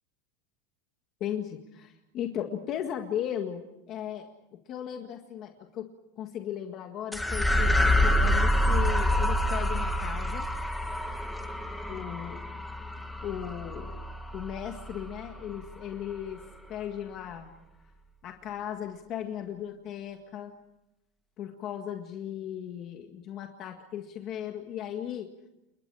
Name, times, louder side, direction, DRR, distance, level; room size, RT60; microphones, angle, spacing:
voice 1, 1.2-10.5 11.9-12.4 13.2-14.0 14.3-16.4 16.7-17.5 18.2-20.5 21.4-25.3, left 10 dB, 30° left, 4 dB, 1.8 m, -37 dB
sound 1, 7.1-15.7, left 1 dB, ahead, 1.9 m, -27 dB
30.0 x 29.5 x 4.9 m, 0.91 s
supercardioid pair, 175°, 0 cm